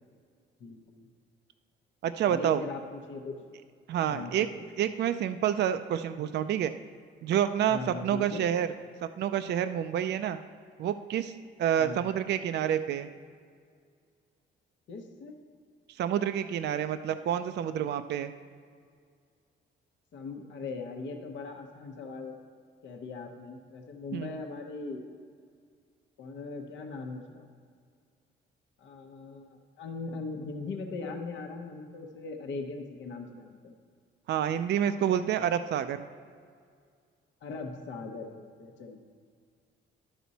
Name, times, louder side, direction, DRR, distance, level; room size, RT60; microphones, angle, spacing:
voice 1, 0.6-1.0 2.3-3.4 4.1-4.6 7.7-8.5 11.8-12.0 14.9-15.3 20.1-22.3 22.8-25.0 26.2-27.5 28.8-33.8 37.4-39.0, left 3 dB, 70° left, 3 dB, 0.9 m, -40 dB
voice 2, 2.0-2.6 3.9-4.5 4.8-6.7 7.2-8.7 9.2-10.4 10.8-11.3 11.6-13.1 16.0-18.3 24.1-24.3 34.3-36.0, right 9 dB, 60° right, 10 dB, 0.4 m, -28 dB
11.0 x 6.1 x 4.1 m, 2.1 s
cardioid pair, 90°, 20 cm